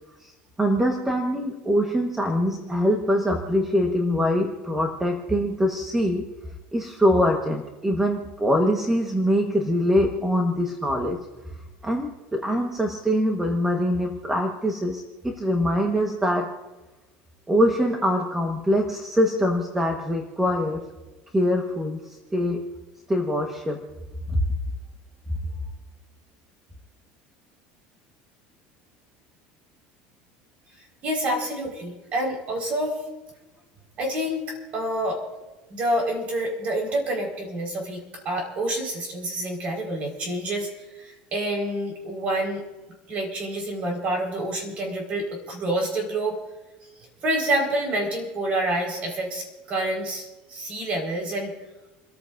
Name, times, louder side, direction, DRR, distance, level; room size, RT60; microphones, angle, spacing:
voice 1, 0.6-6.3 6.7-11.3 11.8-16.6 17.5-20.9 21.3-22.6 23.1-23.9 24.3-24.4, equal, 10° right, 2 dB, 1.3 m, -23 dB
voice 2, 30.7-33.0 34.0-35.2 35.7-42.6 43.1-46.4 47.2-51.5, right 1 dB, 35° right, 1 dB, 4.6 m, -28 dB
29.5 x 14.0 x 2.6 m, 1.1 s
cardioid pair, 155°, 4 cm